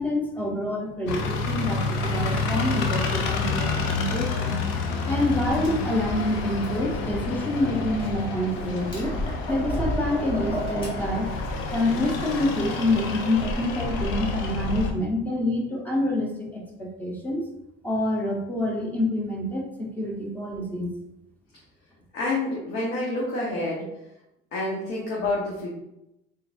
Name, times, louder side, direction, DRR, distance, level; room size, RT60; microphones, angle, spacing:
voice 1, 0.0-4.5 5.0-9.1 9.5-11.3 11.7-17.4 17.8-20.9, left 1 dB, 10° left, -1 dB, 0.8 m, -27 dB
sound 1, 1.1-14.9, left 4 dB, 75° left, 0.6 m, -29 dB
Tap, 5.3-11.5, equal, 25° left, 1.4 m, -33 dB
voice 2, 22.1-23.9 24.5-25.7, left 2 dB, 55° left, -5 dB, 1.1 m, -28 dB
3.8 x 3.7 x 2.6 m, 0.86 s
cardioid pair, 135°, 20 cm